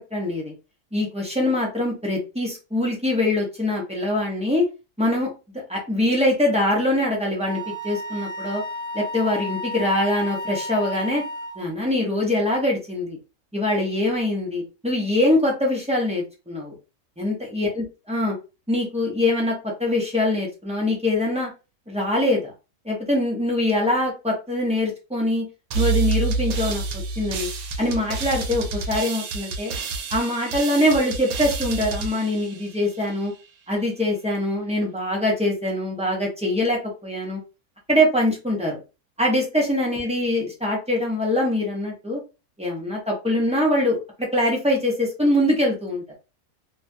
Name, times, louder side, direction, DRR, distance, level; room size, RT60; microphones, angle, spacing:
voice 1, 0.1-0.5 0.9-4.7 5.0-5.3 5.7-8.6 8.9-11.2 11.6-13.2 13.5-16.7 17.2-18.4 18.7-21.5 21.9-22.5 22.8-25.5 25.7-27.5 27.8-29.7 30.1-33.3 33.7-37.4 37.9-38.8 39.2-42.2 42.6-46.1, left 1 dB, 5° right, -2 dB, 0.5 m, -23 dB
Wind instrument woodwind instrument, 7.5-11.7, left 1 dB, 80° left, 1.1 m, -32 dB
sound 1, 25.7-33.2, right 5 dB, 75° right, 1.0 m, -28 dB
2.7 x 2.3 x 2.7 m, 0.30 s
omnidirectional pair, 1.6 m